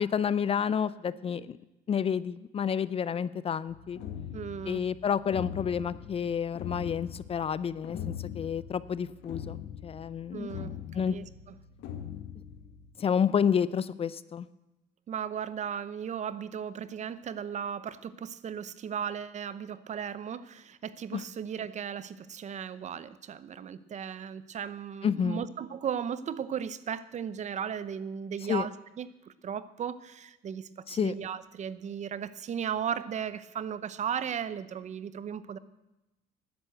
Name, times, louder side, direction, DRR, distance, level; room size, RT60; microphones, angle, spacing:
voice 1, 0.0-1.6 1.9-4.0 4.7-9.6 9.8-10.5 10.9-11.2 13.0-14.5 21.1-21.2 25.0-25.4 28.5-28.7 30.9-31.1, left 7 dB, 35° left, 18 dB, 0.5 m, -29 dB
sound 1, 3.7-12.9, left 9 dB, 85° left, 1.5 m, -42 dB
voice 2, 4.3-4.9 10.3-11.5 15.1-35.6, right 8 dB, 45° right, 15 dB, 0.8 m, -36 dB
12.5 x 10.5 x 7.9 m, 0.99 s
cardioid pair, 110°, 17 cm